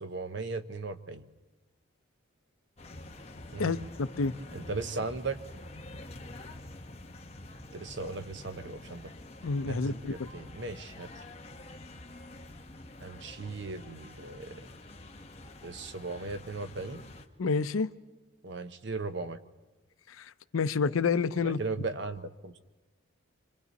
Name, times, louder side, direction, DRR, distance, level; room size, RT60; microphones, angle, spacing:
voice 1, 0.0-1.3 3.5-3.8 4.5-5.4 7.7-9.1 9.6-11.1 13.0-14.7 15.6-17.0 18.4-19.4 21.3-22.5, right 3 dB, 60° right, 10 dB, 0.8 m, -37 dB
sound 1, 2.8-17.3, left 2 dB, 30° left, 1.0 m, -47 dB
voice 2, 3.6-4.3 9.4-10.1 17.4-17.9 20.1-21.6, left 4 dB, 90° left, 14 dB, 0.6 m, -29 dB
26.0 x 25.5 x 4.1 m, 1.2 s
head